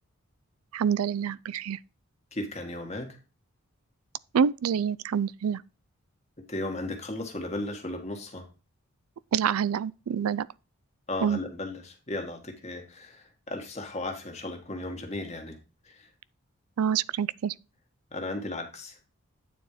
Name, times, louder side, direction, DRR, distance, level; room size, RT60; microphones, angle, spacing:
voice 1, 0.7-1.8 4.3-5.6 9.3-10.5 11.2-11.4 16.8-17.5, right 7 dB, 80° right, 0.4 m, -26 dB
voice 2, 2.3-3.2 6.5-8.4 11.1-15.6 15.8-16.1 18.1-19.0, left 2 dB, 30° left, 1.6 m, -35 dB
9.3 x 4.2 x 4.9 m
head